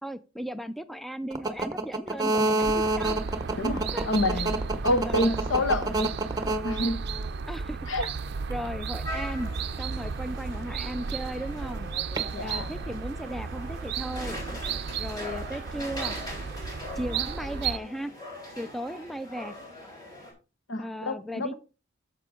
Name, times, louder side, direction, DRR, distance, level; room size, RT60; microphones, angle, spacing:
voice 1, 0.0-3.2 3.9-4.1 5.1-5.4 7.5-8.1 8.5-9.5 9.8-11.9 12.4-14.4 15.0-16.2 17.0-18.1 18.6-19.6 20.8-21.5, equal, ahead, 0.4 m, -36 dB
sound 1, 1.3-7.3 8.0-8.6 12.2-12.3, right 2 dB, 20° right, 0.9 m, -27 dB
sound 2, 2.6-17.8, right 5 dB, 55° right, 0.5 m, -34 dB
voice 2, 3.6-4.6 4.8-6.1 6.6-7.0 7.9-8.0 12.3-12.7 20.7-21.5, left 1 dB, 80° left, 1.1 m, -28 dB
sound 3, 9.0-20.3, left 1 dB, 20° left, 5.1 m, -41 dB
9.5 x 6.7 x 3.7 m
head